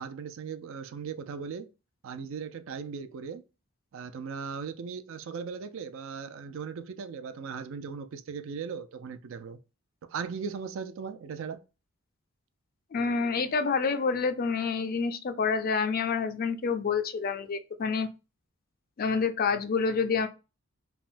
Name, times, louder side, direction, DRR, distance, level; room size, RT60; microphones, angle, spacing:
voice 1, 0.0-1.7 2.0-3.4 3.9-9.6 10.1-11.6, right 6 dB, 60° right, 0.4 m, -38 dB
voice 2, 12.9-18.1 19.0-20.3, left 5 dB, 45° left, 0.4 m, -28 dB
3.4 x 2.0 x 2.5 m
head